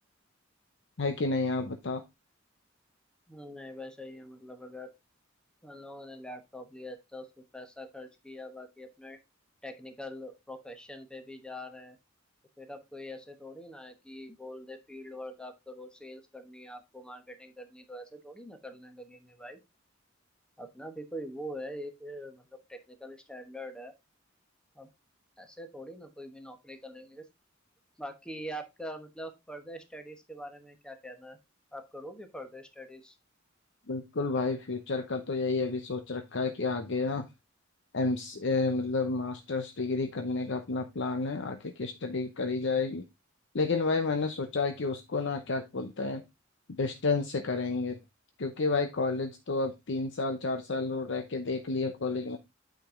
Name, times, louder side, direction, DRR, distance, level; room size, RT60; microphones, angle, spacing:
voice 1, 1.0-2.0 33.9-37.3 37.9-43.0 43.5-46.2 46.8-48.0 48.4-52.4, left 3 dB, 65° left, 6 dB, 0.8 m, -30 dB
voice 2, 3.3-4.9 5.6-7.3 7.5-9.2 9.6-12.0 12.6-19.6 20.6-23.9 24.7-24.9 25.4-27.2 28.0-31.4 31.7-33.2, equal, 5° left, 6 dB, 1.1 m, -44 dB
8.9 x 5.1 x 3.7 m, 0.22 s
head